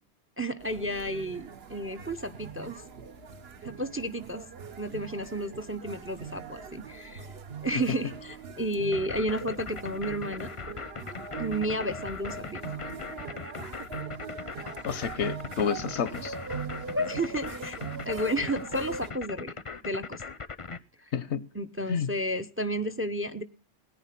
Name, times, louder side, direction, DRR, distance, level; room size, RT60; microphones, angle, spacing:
voice 1, 0.4-2.8 3.6-4.4 4.8-7.3 7.6-10.5 11.4-12.8 16.9-17.8 18.0-19.5 19.8-20.2 21.0-21.1 21.5-23.4, equal, 15° right, 0.5 m, -32 dB
sound 1, 0.6-19.1, right 5 dB, 65° right, 1.2 m, -41 dB
sound 2, 8.9-20.8, left 5 dB, 35° left, 0.7 m, -39 dB
voice 2, 14.8-16.3 21.1-21.4 21.9-22.1, left 7 dB, 80° left, 1.1 m, -29 dB
18.0 x 9.9 x 5.8 m
omnidirectional pair, 1.1 m